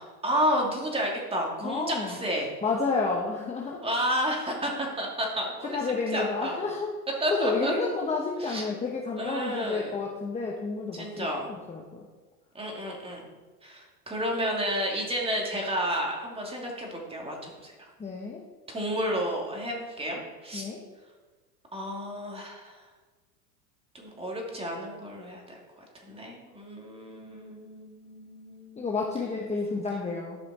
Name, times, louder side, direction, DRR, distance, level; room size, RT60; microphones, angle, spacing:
voice 1, 0.0-2.5 3.8-5.8 6.1-6.6 7.2-7.7 8.4-8.7 9.2-10.0 10.9-11.5 12.5-13.2 13.6-17.7 18.7-20.7 21.7-22.8 23.9-25.6 25.9-28.8, equal, 10° right, -1 dB, 2.7 m, -31 dB
voice 2, 1.6-2.2 2.6-3.8 5.7-6.9 7.4-12.0 18.0-18.4 20.5-20.8 28.8-30.4, left 4 dB, 15° left, -1 dB, 1.1 m, -30 dB
12.0 x 5.6 x 4.3 m, 1.3 s
hypercardioid pair, 100°, 49 cm